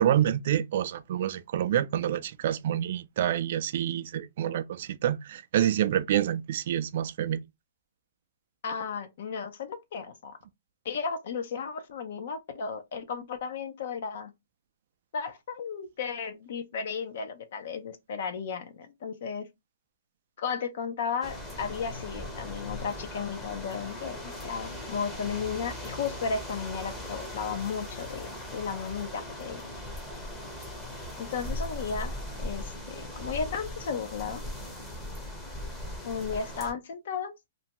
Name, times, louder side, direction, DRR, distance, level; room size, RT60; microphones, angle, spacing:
voice 1, 0.0-7.4, right 11 dB, 50° right, 0.3 m, -27 dB
voice 2, 8.6-10.4 10.8-14.3 15.1-19.4 20.4-29.6 31.2-32.1 32.4-34.4 36.0-37.3, left 6 dB, 55° left, 0.5 m, -34 dB
sound 1, 21.2-36.7, left 1 dB, 10° left, 0.7 m, -39 dB
2.6 x 2.2 x 2.9 m
hypercardioid pair, 155°, 0 cm